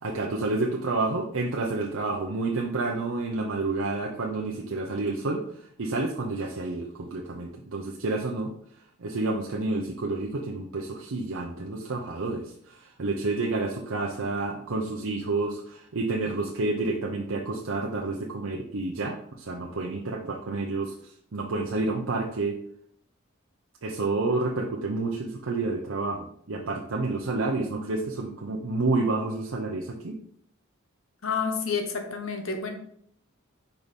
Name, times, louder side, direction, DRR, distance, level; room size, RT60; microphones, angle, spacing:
voice 1, 0.0-8.5 9.0-20.9 21.3-22.6 23.8-30.2, right 3 dB, 75° right, -1 dB, 0.7 m, -29 dB
voice 2, 31.2-32.7, left 5 dB, 70° left, 5 dB, 1.0 m, -29 dB
5.2 x 4.6 x 4.1 m, 0.66 s
head